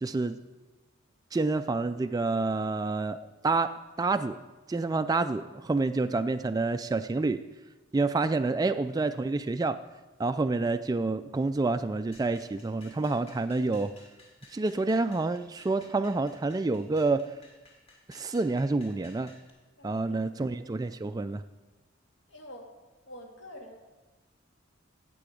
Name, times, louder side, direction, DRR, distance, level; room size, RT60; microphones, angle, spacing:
voice 1, 0.0-0.4 1.3-3.2 3.4-4.4 4.7-7.4 7.9-9.8 10.2-13.9 14.5-17.3 18.1-19.3 19.8-21.4, right 3 dB, 20° right, 9 dB, 0.3 m, -28 dB
sound 1, 12.1-19.5, left 2 dB, 30° left, 2.2 m, -56 dB
voice 2, 19.8-20.6 22.3-22.7 23.1-23.8, left 1 dB, 65° left, 2 dB, 2.0 m, -47 dB
17.0 x 6.9 x 5.0 m, 1.2 s
head